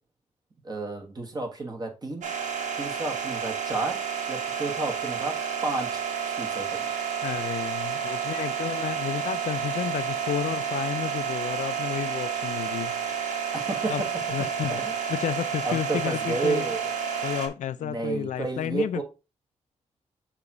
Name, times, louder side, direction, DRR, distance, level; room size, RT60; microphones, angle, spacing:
voice 1, 0.6-2.3 2.8-4.0 4.3-5.4 5.6-6.0 6.4-6.9 13.5-14.1 14.6-14.9 15.6-16.8 17.8-19.0, right 3 dB, 35° right, 1.5 m, -31 dB
sound 1, 2.2-17.5, right 7 dB, 90° right, 1.5 m, -30 dB
voice 2, 7.2-13.5 13.9-14.0 14.3-14.8 15.1-16.7 17.2-19.0, left 10 dB, 85° left, 0.4 m, -31 dB
6.8 x 3.0 x 4.8 m
wide cardioid pair, 120°, 12 cm